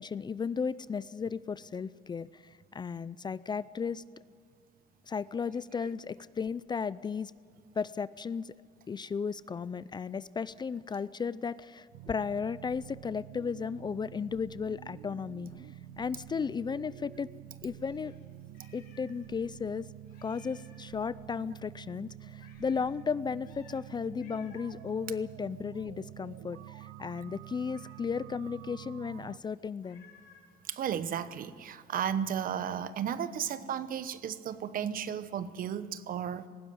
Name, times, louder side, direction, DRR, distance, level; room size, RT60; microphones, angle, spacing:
voice 1, 0.0-4.0 5.1-7.3 7.8-8.5 8.9-15.7 16.0-17.3 17.6-18.1 18.7-19.9 20.2-30.0, left 6 dB, 25° left, 18 dB, 0.4 m, -35 dB
sound 1, 11.9-29.4, right 13 dB, 85° right, 0.5 m, -48 dB
Meow, 17.8-19.3 19.6-19.7 20.1-20.9 22.4-23.0 23.4-23.8 24.2-24.8 27.6-28.2 29.8-30.6, left 7 dB, 70° left, 4.2 m, -60 dB
voice 2, 30.7-36.5, right 8 dB, 55° right, 14 dB, 1.0 m, -34 dB
19.0 x 16.0 x 9.4 m, 2.1 s
cardioid pair, 110°, 17 cm